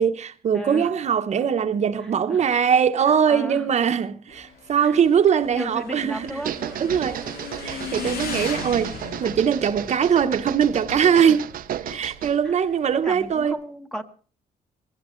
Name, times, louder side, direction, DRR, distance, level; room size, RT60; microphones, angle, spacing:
voice 1, 0.0-6.4 6.8-7.2 7.6-8.9 9.2-11.4 11.9-13.6, right 7 dB, 45° right, 1.0 m, -21 dB
voice 2, 0.5-0.9 2.0-2.6 3.3-3.7 4.8-5.0 5.3-6.9 11.3-11.4 12.4-12.6 12.9-14.0, equal, 5° left, 1.2 m, -35 dB
Motorcycle / Engine, 4.3-13.5, left 5 dB, 85° left, 3.0 m, -38 dB
sound 1, 6.3-12.4, right 11 dB, 70° right, 0.7 m, -33 dB
20.5 x 17.5 x 3.2 m
cardioid pair, 155°, 15 cm